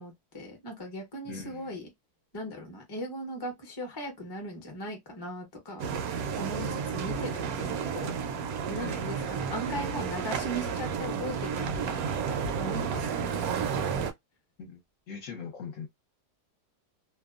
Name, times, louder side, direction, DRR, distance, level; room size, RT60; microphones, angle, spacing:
voice 1, 0.0-1.9 2.3-5.9 6.4-6.7 6.9-8.1 8.7-13.6, equal, 25° left, 0.6 m, -38 dB
voice 2, 1.2-1.8 6.6-7.0 8.7-9.0 14.6-14.8 15.1-15.9, left 5 dB, 60° left, 1.0 m, -41 dB
sound 1, 5.8-14.1, right 6 dB, 70° right, 1.0 m, -32 dB
2.8 x 2.2 x 2.3 m
omnidirectional pair, 1.7 m